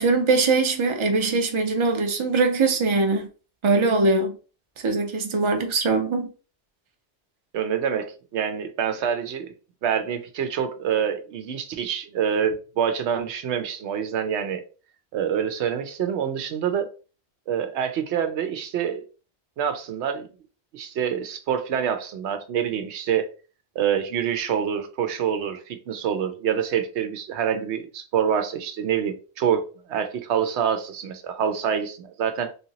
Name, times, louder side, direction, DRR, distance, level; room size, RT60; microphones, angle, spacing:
voice 1, 0.0-3.3 3.6-4.3 4.8-6.3, right 3 dB, 35° right, 0.5 m, -21 dB
voice 2, 7.5-9.5 9.8-14.6 15.1-16.9 17.5-19.0 19.6-20.3 20.7-23.3 23.8-32.5, right 8 dB, 85° right, 0.9 m, -26 dB
3.4 x 2.8 x 2.8 m
omnidirectional pair, 1.1 m